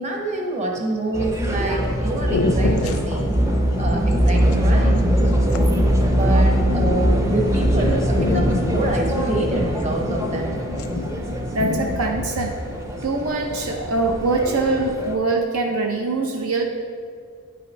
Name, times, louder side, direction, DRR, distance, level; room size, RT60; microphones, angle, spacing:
voice 1, 0.0-3.4 3.8-5.0 5.3-5.8 6.1-10.5, right 2 dB, 30° right, 0 dB, 0.9 m, -26 dB
sound 1, 0.8-1.2 1.9-2.0 2.2-7.5 8.0-10.5 10.7-11.3 11.6-12.6, left 3 dB, 75° left, 0.5 m, -29 dB
sound 2, 1.1-15.1, equal, 15° right, 0.5 m, -22 dB
voice 2, 11.5-12.6 13.0-16.6, right 3 dB, 70° right, 3 dB, 0.6 m, -23 dB
9.3 x 5.6 x 3.2 m, 2.1 s
head